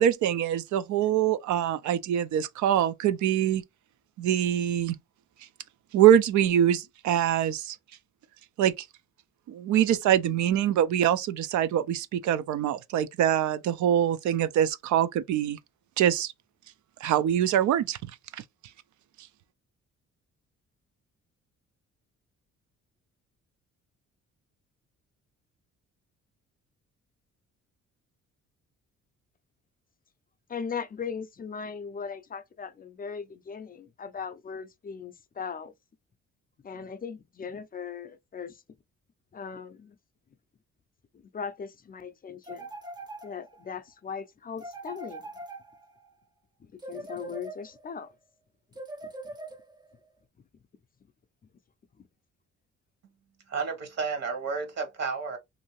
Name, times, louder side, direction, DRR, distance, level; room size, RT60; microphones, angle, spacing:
voice 1, 0.0-3.6 4.2-5.0 5.9-7.8 8.6-8.9 9.5-15.6 16.0-16.3 17.0-18.0, right 10 dB, 70° right, 0.5 m, -24 dB
voice 2, 30.5-35.7 36.6-38.6 39.3-40.0 41.1-42.7 43.2-45.3 46.6-48.1, left 6 dB, 30° left, 0.5 m, -38 dB
sound 1, 42.4-43.7 44.6-46.1 46.8-48.0 48.7-49.9, right 2 dB, 15° right, 0.6 m, -42 dB
voice 3, 53.5-55.4, right 5 dB, 55° right, 1.1 m, -31 dB
2.6 x 2.6 x 3.0 m
cardioid pair, 90°, 30 cm